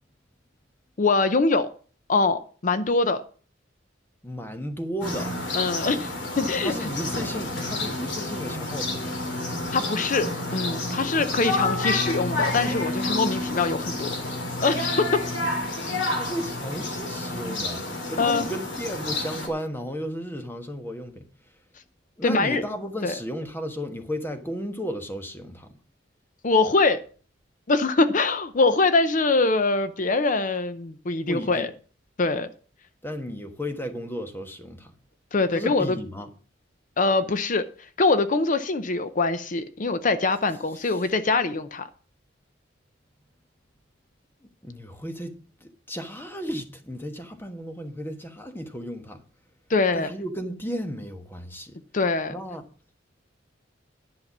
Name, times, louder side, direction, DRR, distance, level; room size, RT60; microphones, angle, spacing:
voice 1, 1.0-1.7 2.1-3.2 5.5-6.8 9.7-14.1 14.6-15.2 18.2-18.5 22.2-22.6 23.0-23.1 26.4-27.0 27.7-31.7 32.2-32.5 35.3-36.0 37.0-37.6 38.0-41.9 49.7-50.1 51.9-52.3, left 3 dB, 40° left, 0.6 m, -23 dB
voice 2, 4.2-5.3 6.6-9.1 16.1-17.8 18.1-21.3 22.2-25.7 31.3-31.7 33.0-34.9 35.5-36.3 40.9-41.1 44.6-45.4 45.6-49.2 49.9-51.8 52.3-52.6, equal, 10° left, 1.2 m, -34 dB
sound 1, 5.0-19.5, left 2 dB, 65° left, 2.9 m, -29 dB
10.5 x 5.7 x 7.2 m
head